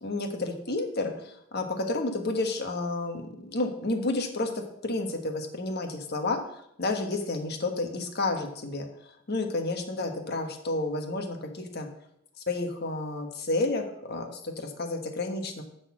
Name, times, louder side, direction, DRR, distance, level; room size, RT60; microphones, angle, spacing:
voice 1, 0.0-11.9 12.5-15.6, left 2 dB, 55° left, 4 dB, 1.2 m, -31 dB
9.7 x 4.1 x 7.3 m, 0.75 s
head